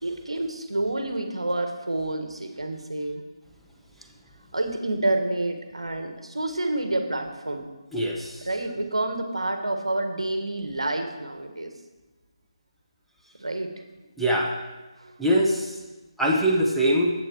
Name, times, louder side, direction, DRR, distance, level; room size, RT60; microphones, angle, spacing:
voice 1, 0.0-3.2 4.5-7.7 8.4-11.7 13.4-13.7 15.0-15.1, right 2 dB, 75° right, 6 dB, 1.4 m, -28 dB
voice 2, 7.9-8.5 14.2-14.5 15.2-15.7 16.2-17.1, equal, ahead, -5 dB, 0.8 m, -22 dB
10.0 x 8.1 x 4.5 m, 1.2 s
figure-of-eight pair, 155°, 3 cm